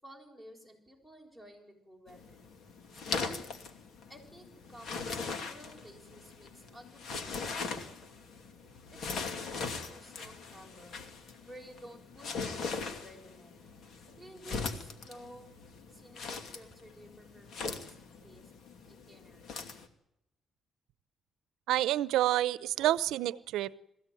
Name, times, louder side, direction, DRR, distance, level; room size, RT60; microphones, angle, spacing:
voice 1, 0.0-2.5 2.9-3.4 4.1-8.1 8.9-11.1 11.5-13.8 14.2-15.5 15.9-18.0 18.2-18.5 18.9-19.7, right 1 dB, 5° left, 3 dB, 6.9 m, -53 dB
sound 1, 2.1-19.9, left 4 dB, 65° left, 2.5 m, -40 dB
voice 2, 21.7-23.7, right 14 dB, 90° right, 19 dB, 0.8 m, -28 dB
22.0 x 16.0 x 9.2 m, 0.85 s
cardioid pair, 90°, 0 cm